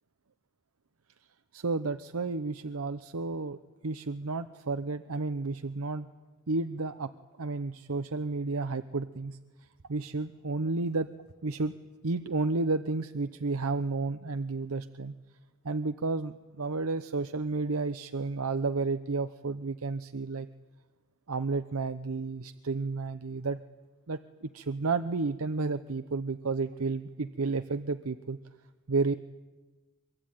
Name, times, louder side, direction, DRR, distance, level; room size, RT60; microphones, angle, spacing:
voice 1, 1.5-3.6 3.8-6.1 6.5-7.1 7.4-9.4 9.9-11.1 11.4-11.7 12.0-15.2 15.6-20.5 21.3-23.6 24.1-28.4 28.9-29.1, right 3 dB, 85° right, 10 dB, 0.8 m, -31 dB
24.0 x 23.0 x 9.3 m, 1.3 s
head